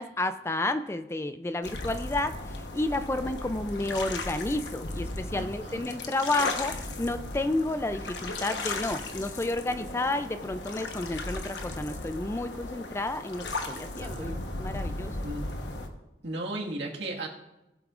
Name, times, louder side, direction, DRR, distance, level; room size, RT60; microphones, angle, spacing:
voice 1, 0.0-2.3 2.7-14.3 14.6-15.1, left 2 dB, 15° left, 10 dB, 0.4 m, -31 dB
sound 1, 1.6-15.9, left 2 dB, 80° left, 1.1 m, -36 dB
voice 2, 5.3-5.9 14.0-14.4 15.2-15.4 16.2-17.3, right 2 dB, 80° right, -1 dB, 1.7 m, -35 dB
18.5 x 8.0 x 2.5 m, 0.97 s
head